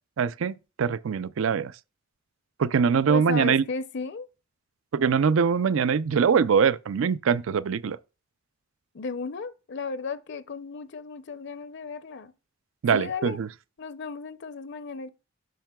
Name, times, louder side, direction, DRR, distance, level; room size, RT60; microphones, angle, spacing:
voice 1, 0.2-1.7 2.6-3.6 4.9-8.0 12.8-13.5, right 6 dB, 70° right, 0.4 m, -23 dB
voice 2, 3.1-4.3 8.9-12.3 12.9-13.4 13.8-15.1, left 4 dB, 55° left, 0.6 m, -34 dB
10.5 x 6.5 x 2.3 m
head